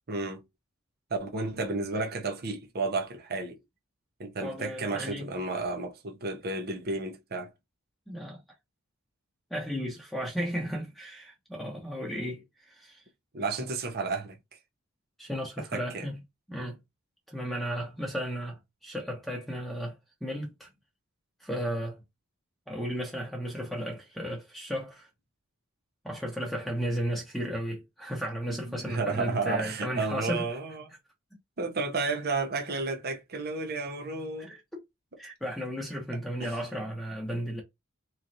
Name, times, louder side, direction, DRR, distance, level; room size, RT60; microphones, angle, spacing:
voice 1, 0.1-0.4 1.1-3.6 4.2-7.5 13.3-14.4 15.6-16.1 28.5-30.9 31.6-34.5 36.4-36.6, right 3 dB, 50° right, 0.8 m, -32 dB
voice 2, 4.4-5.3 8.1-8.4 9.5-13.0 15.2-16.2 16.5-16.8 17.3-19.9 20.2-20.7 21.4-22.0 22.7-25.1 26.0-30.4 34.4-34.6 35.2-37.6, equal, ahead, 0.9 m, -34 dB
3.8 x 3.1 x 2.7 m
head